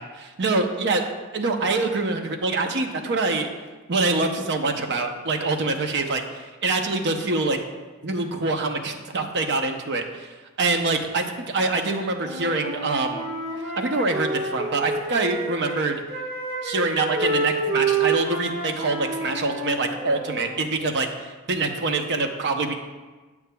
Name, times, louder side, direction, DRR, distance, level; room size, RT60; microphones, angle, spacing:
voice 1, 0.2-1.0 1.3-3.5 3.9-7.6 8.0-13.3 13.8-16.0 16.6-22.7, right 3 dB, 50° right, 4 dB, 0.7 m, -25 dB
Wind instrument woodwind instrument, 12.1-15.8 16.1-20.5, right 3 dB, 35° right, 1.4 m, -28 dB
8.5 x 8.2 x 2.3 m, 1.3 s
head